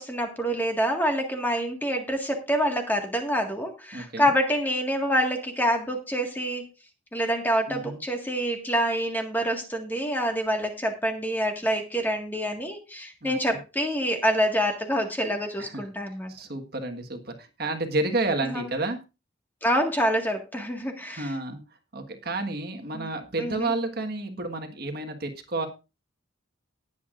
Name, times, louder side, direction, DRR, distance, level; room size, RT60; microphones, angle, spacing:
voice 1, 0.0-6.6 7.1-16.3 18.4-18.7 19.6-21.3 22.9-23.1 23.4-23.7, equal, 10° left, 3 dB, 1.7 m, -26 dB
voice 2, 3.9-4.3 7.7-8.0 13.2-13.6 15.6-15.9 16.3-19.0 21.1-21.6 21.9-25.7, right 2 dB, 50° right, 5 dB, 1.6 m, -30 dB
19.0 x 8.3 x 2.5 m, 0.28 s
head